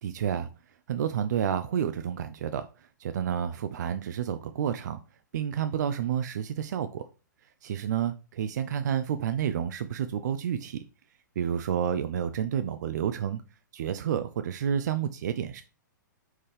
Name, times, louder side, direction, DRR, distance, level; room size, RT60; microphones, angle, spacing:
voice 1, 0.0-0.5 0.9-2.7 3.0-5.0 5.3-7.0 7.6-10.8 11.4-13.4 13.7-15.6, right 9 dB, 65° right, 9 dB, 0.4 m, -30 dB
4.5 x 3.6 x 3.2 m, 0.33 s
hypercardioid pair, 115°, 10 cm